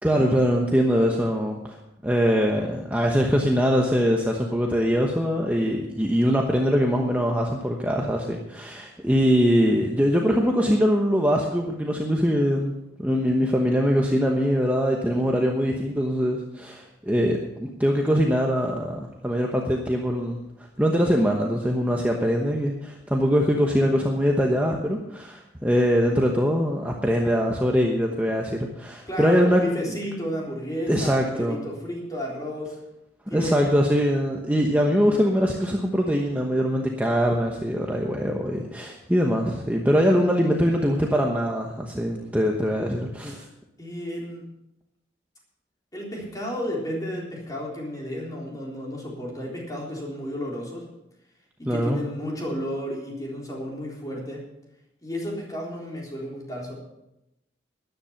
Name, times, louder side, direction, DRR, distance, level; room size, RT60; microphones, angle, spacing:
voice 1, 0.0-1.8 2.0-12.7 13.0-20.4 20.8-29.6 30.9-31.6 33.3-43.5 51.6-52.0, equal, 10° right, 0 dB, 1.0 m, -22 dB
voice 2, 29.1-32.8 33.3-33.6 43.8-44.5 45.9-50.9 51.6-54.4 55.0-56.7, equal, 20° left, -3 dB, 3.8 m, -32 dB
13.5 x 10.5 x 5.8 m, 0.88 s
head